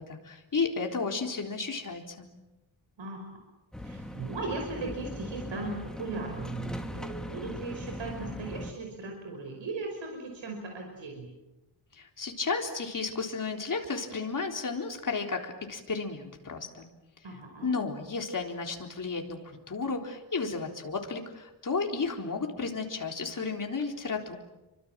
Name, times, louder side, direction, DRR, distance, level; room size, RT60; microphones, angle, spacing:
voice 1, 0.0-2.3 12.0-16.9 17.6-24.4, left 4 dB, 40° left, 3 dB, 3.9 m, -33 dB
voice 2, 3.0-3.4 3.8-11.4 17.2-17.8, right 3 dB, 70° right, 2 dB, 5.3 m, -38 dB
sound 1, 3.7-8.7, left 1 dB, ahead, 2.3 m, -39 dB
30.0 x 24.5 x 7.6 m, 1.0 s
wide cardioid pair, 145°, 47 cm